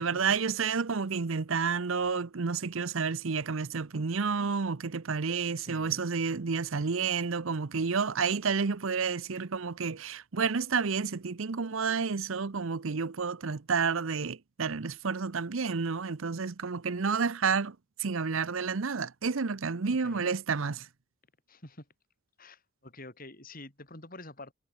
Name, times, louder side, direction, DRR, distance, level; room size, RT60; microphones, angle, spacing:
voice 1, 0.0-17.7 18.0-20.8, right 5 dB, 65° right, 0.7 m, -30 dB
voice 2, 5.6-6.1 20.0-20.3 21.5-21.9 22.4-24.5, left 2 dB, 40° left, 7.5 m, -48 dB
head